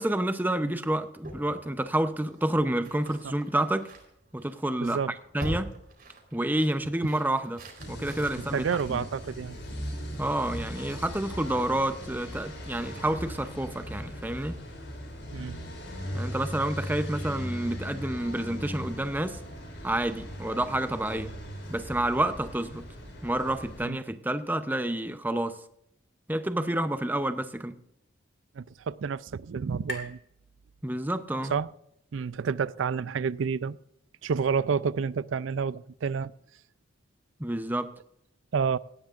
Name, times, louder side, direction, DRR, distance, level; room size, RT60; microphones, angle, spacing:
voice 1, 0.0-3.9 4.3-5.0 5.3-5.7 6.3-8.6 8.9-9.0 10.2-14.6 16.1-19.4 19.8-21.3 21.7-22.9 23.2-25.6 26.3-27.8 30.8-31.5 37.4-37.9, right 1 dB, 10° right, 0.7 m, -29 dB
sound 1, 1.2-9.7, right 1 dB, 45° right, 4.1 m, -44 dB
voice 2, 4.8-5.1 8.5-9.6 15.3-15.6 23.8-24.0 28.6-30.2 31.5-31.7 32.1-33.8 34.2-36.3 38.5-38.8, right 6 dB, 80° right, 0.4 m, -29 dB
sound 2, 7.8-23.8, equal, 80° left, 6.3 m, -39 dB
sound 3, 27.6-31.3, left 1 dB, 55° left, 2.7 m, -46 dB
18.0 x 16.5 x 2.5 m
head